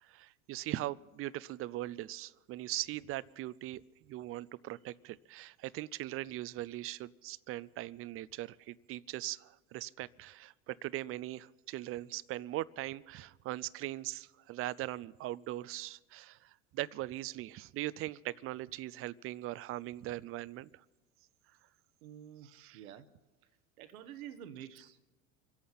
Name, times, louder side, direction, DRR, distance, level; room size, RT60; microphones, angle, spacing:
voice 1, 0.0-3.8 4.1-20.7 22.5-22.8, right 16 dB, 35° right, 20 dB, 0.4 m, -40 dB
voice 2, 22.0-23.1 23.8-25.0, right 10 dB, 85° right, 11 dB, 1.2 m, -49 dB
25.5 x 8.6 x 5.7 m, 1.2 s
hypercardioid pair, 95°, 41 cm